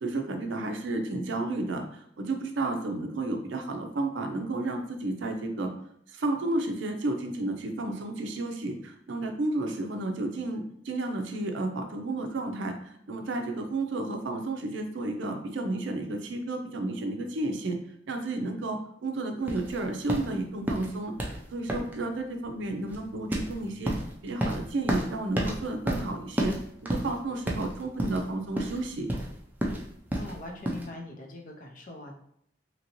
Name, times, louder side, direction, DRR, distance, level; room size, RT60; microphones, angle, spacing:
voice 1, 0.0-5.7 6.1-17.8 18.1-23.9 24.2-26.6 26.8-29.1, right 2 dB, 70° right, 5 dB, 0.5 m, -32 dB
sound 1, 19.5-30.9, right 1 dB, 10° right, 0.4 m, -32 dB
voice 2, 30.1-32.1, left 2 dB, 45° left, 2 dB, 0.5 m, -42 dB
2.9 x 2.6 x 2.9 m, 0.70 s
head